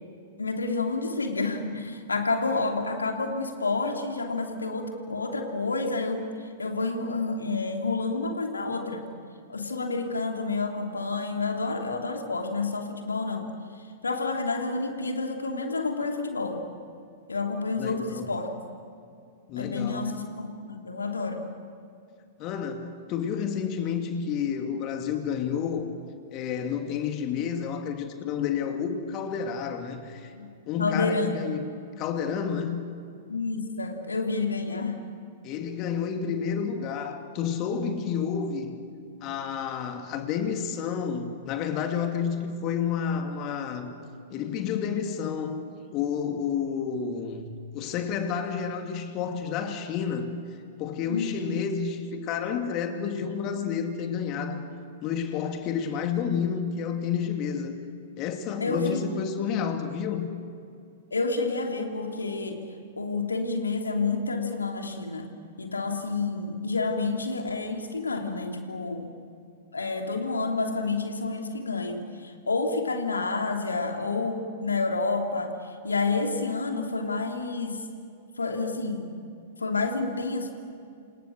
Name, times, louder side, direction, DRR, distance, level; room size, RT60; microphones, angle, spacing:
voice 1, 0.4-6.3 6.6-9.1 9.5-13.5 14.0-16.7 17.3-18.5 19.6-21.5 30.4-30.5 30.8-31.4 33.3-35.0 51.1-51.6 58.6-59.0 61.1-62.7 63.0-65.3 65.6-69.1 69.7-77.8 78.4-79.1 79.6-80.5, left 3 dB, 75° left, 3 dB, 3.1 m, -29 dB
voice 2, 17.8-18.3 19.5-20.2 22.4-25.9 26.3-30.3 30.7-31.6 32.0-32.8 35.4-38.8 39.2-44.0 44.3-50.3 50.8-54.6 55.0-57.8 58.2-60.3, left 7 dB, 35° left, 5 dB, 2.5 m, -30 dB
29.5 x 27.0 x 6.5 m, 2.4 s
figure-of-eight pair, 105°, 0 cm